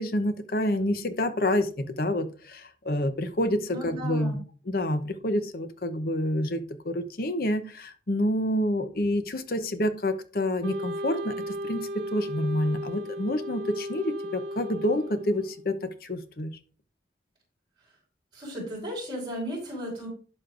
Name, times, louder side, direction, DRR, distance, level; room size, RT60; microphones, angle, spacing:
voice 1, 0.0-1.7 2.0-4.4 4.7-16.6, left 1 dB, 55° left, 9 dB, 0.8 m, -28 dB
voice 2, 3.7-4.4 18.3-20.1, equal, 25° right, -9 dB, 4.4 m, -35 dB
Wind instrument woodwind instrument, 10.6-15.7, equal, 80° right, 0.8 m, -35 dB
11.5 x 6.4 x 2.5 m, 0.39 s
head